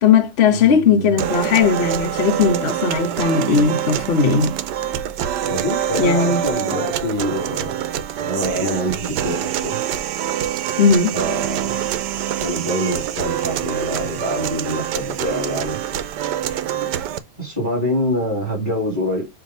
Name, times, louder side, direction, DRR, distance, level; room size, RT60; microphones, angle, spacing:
voice 1, 0.0-4.5 6.0-6.4 10.8-11.1, left 6 dB, 50° left, 0.9 m, -17 dB
voice 2, 0.5-1.3 5.4-7.8 8.2-9.8 11.1-11.9 12.4-15.8 17.4-19.2, equal, 30° right, 3.7 m, -25 dB
sound 1, 1.2-17.2, right 11 dB, 85° right, 1.2 m, -25 dB
6.8 x 2.6 x 5.6 m
omnidirectional pair, 1.8 m